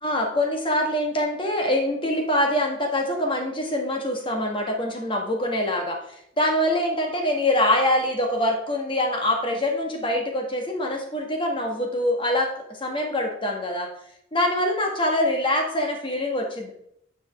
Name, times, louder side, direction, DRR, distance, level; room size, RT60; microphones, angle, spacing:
voice 1, 0.0-6.0 6.4-12.5 12.8-13.9 14.3-16.7, left 1 dB, 25° left, 2 dB, 1.6 m, -24 dB
9.8 x 5.6 x 3.6 m, 0.72 s
head